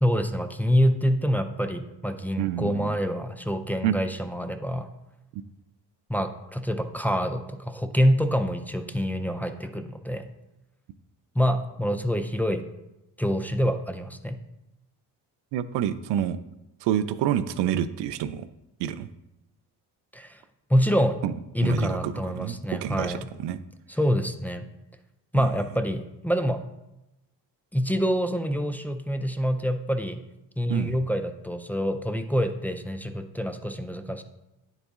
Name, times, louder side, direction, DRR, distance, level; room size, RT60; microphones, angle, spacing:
voice 1, 0.0-4.9 6.1-10.2 11.4-12.6 13.2-14.4 20.1-20.4 20.7-21.2 21.5-23.3 23.9-24.7 25.3-26.6 27.7-30.2 30.6-34.2, equal, 5° left, 5 dB, 0.3 m, -26 dB
voice 2, 2.4-3.0 3.8-3.9 5.3-5.4 15.5-16.4 16.8-18.5 18.8-19.1 21.2-21.3 21.6-23.6 25.4-25.5 30.7-30.9, right 10 dB, 85° right, 13 dB, 0.5 m, -28 dB
9.7 x 4.1 x 3.5 m, 0.93 s
cardioid pair, 105°, 41 cm